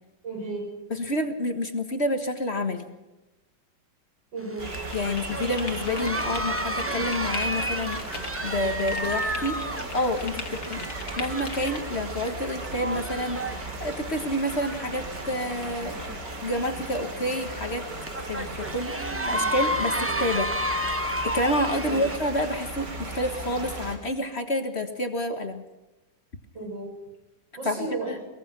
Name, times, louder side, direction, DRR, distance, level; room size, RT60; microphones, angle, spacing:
voice 1, 0.2-0.7 4.3-4.7 21.8-22.0 26.5-26.9 27.6-28.1, right 3 dB, 85° right, 0 dB, 8.0 m, -34 dB
voice 2, 0.9-2.9 4.9-8.0 8.4-9.6 9.9-10.8 11.2-16.0 16.4-17.8 18.3-20.5 21.2-25.6 27.6-28.2, left 1 dB, 35° left, 7 dB, 1.7 m, -28 dB
sound 1, 4.4-22.2, equal, 15° right, 0.5 m, -33 dB
sound 2, 4.6-24.0, right 2 dB, 65° right, 4.0 m, -37 dB
sound 3, 4.9-11.8, left 4 dB, 55° left, 2.5 m, -39 dB
23.0 x 21.0 x 6.1 m, 1.0 s
omnidirectional pair, 2.0 m